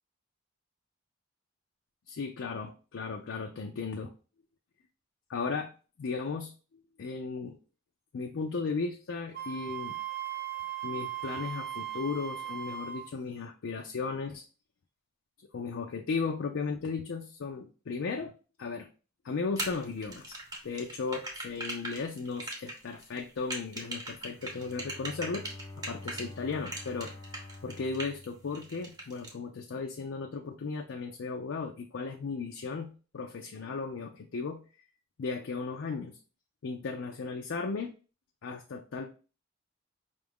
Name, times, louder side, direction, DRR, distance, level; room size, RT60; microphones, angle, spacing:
voice 1, 2.1-4.1 5.3-5.7 6.0-7.6 8.1-10.0 10.8-14.4 15.5-18.3 18.6-18.9 19.2-20.4 20.6-25.5 25.8-27.1 27.6-34.6 35.2-36.2 36.6-37.9 38.4-39.1, left 4 dB, 70° left, 3 dB, 0.4 m, -36 dB
Wind instrument woodwind instrument, 9.3-13.1, right 11 dB, 45° right, 0.5 m, -38 dB
sound 1, 19.6-26.3 26.6-28.2 28.5-29.3, right 1 dB, 20° right, 0.9 m, -39 dB
Bowed string instrument, 24.2-29.2, left 2 dB, 10° left, 0.6 m, -48 dB
5.1 x 2.4 x 3.4 m, 0.35 s
head